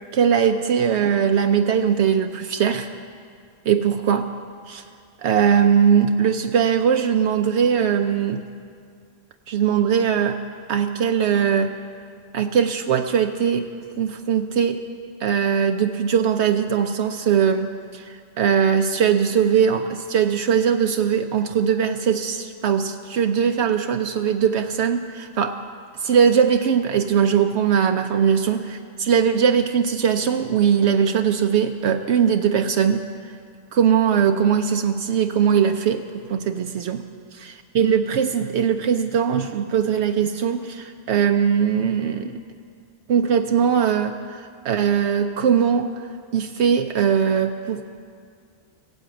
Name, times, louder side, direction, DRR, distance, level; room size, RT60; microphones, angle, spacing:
voice 1, 0.1-2.9 3.7-4.3 4.7-4.8 5.2-8.4 9.5-10.4 10.7-11.8 12.3-13.6 14.0-14.8 15.2-25.5 26.0-28.6 29.0-33.0 33.7-37.0 37.4-42.4 43.1-45.9 46.3-47.9, right 7 dB, 75° right, 6 dB, 0.9 m, -20 dB
16.5 x 8.0 x 8.7 m, 2.2 s
omnidirectional pair, 1.2 m